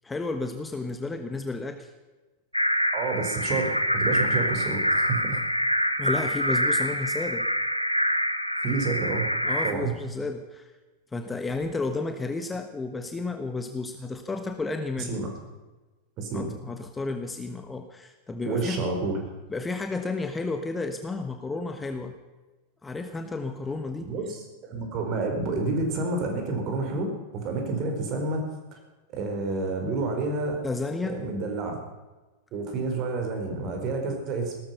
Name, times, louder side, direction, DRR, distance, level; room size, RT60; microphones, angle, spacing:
voice 1, 0.0-1.9 6.0-7.5 9.4-10.7 11.1-15.2 16.3-18.8 19.5-22.1 22.8-24.1 30.6-31.2, left 3 dB, 10° left, 7 dB, 1.2 m, -32 dB
sound 1, 2.5-9.7, equal, 90° left, 1.0 m, -26 dB
voice 2, 2.9-5.4 8.6-9.3 9.6-9.9 15.0-15.3 16.2-16.5 18.4-19.2 24.0-28.5 28.7-28.8 29.1-30.6 31.1-31.8 32.5-34.5, right 3 dB, 35° right, 3 dB, 4.4 m, -29 dB
17.5 x 13.5 x 5.7 m, 1.2 s
figure-of-eight pair, 90°, 0 cm